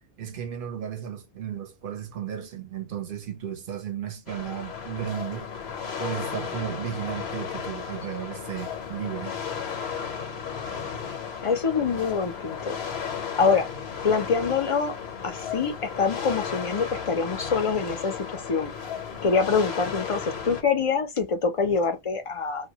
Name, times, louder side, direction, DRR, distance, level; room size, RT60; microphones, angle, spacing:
voice 1, 0.2-5.5 6.0-9.4, right 9 dB, 65° right, 0.7 m, -34 dB
sound 1, 4.3-20.6, left 6 dB, 80° left, 0.9 m, -34 dB
voice 2, 11.4-12.8 13.4-13.7 14.0-14.9 15.2-18.7 19.2-22.7, left 5 dB, 40° left, 0.5 m, -25 dB
2.2 x 2.2 x 2.7 m
omnidirectional pair, 1.0 m